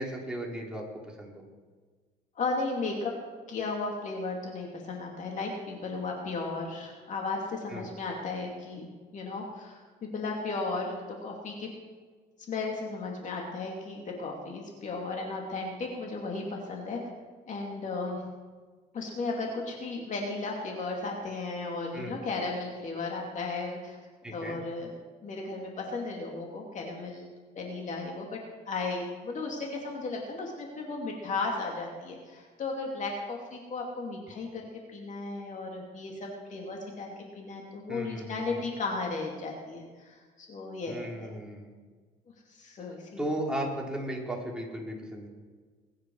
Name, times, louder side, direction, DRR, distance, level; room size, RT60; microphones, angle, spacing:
voice 1, 0.0-1.4 7.7-7.9 21.9-22.2 24.2-24.6 37.9-38.6 40.9-41.7 43.2-45.3, right 1 dB, 5° right, -2 dB, 3.5 m, -36 dB
voice 2, 2.4-3.1 3.5-8.9 9.1-11.7 12.5-17.0 17.5-18.2 18.9-24.0 24.3-24.9 25.2-28.4 28.7-41.3 42.5-43.1, left 3 dB, 45° left, 0 dB, 2.6 m, -35 dB
21.5 x 9.4 x 4.7 m, 1.4 s
cardioid pair, 110°, 17 cm